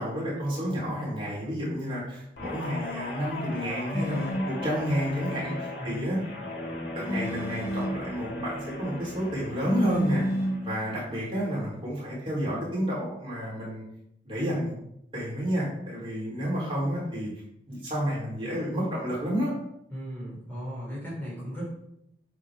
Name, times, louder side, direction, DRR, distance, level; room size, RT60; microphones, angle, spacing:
voice 1, 0.0-6.2 6.9-10.2 10.6-13.8 14.2-14.7 15.1-17.3 17.7-19.5, equal, 30° right, -7 dB, 3.8 m, -30 dB
Guitar, 2.4-10.9 11.3-11.7, left 1 dB, 85° left, 2.4 m, -38 dB
sound 1, 3.9-4.5 7.1-8.0 9.6-10.7, equal, 60° left, 3.9 m, -29 dB
voice 2, 5.8-6.1 19.9-21.6, equal, 10° left, -7 dB, 3.7 m, -36 dB
8.8 x 7.0 x 3.7 m, 0.77 s
head